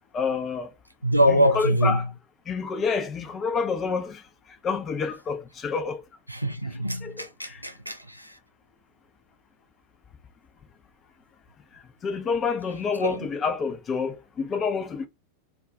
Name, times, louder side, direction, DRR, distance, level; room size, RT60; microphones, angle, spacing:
voice 1, 0.1-0.7 1.3-2.0 2.5-4.2 4.6-6.0 7.0-7.6 12.0-15.1, left 5 dB, 25° left, 0.5 m, -28 dB
voice 2, 1.0-2.0 6.3-8.3 13.0-13.2, equal, 90° right, 0.4 m, -24 dB
2.4 x 2.3 x 3.6 m
figure-of-eight pair, 90°, 0 cm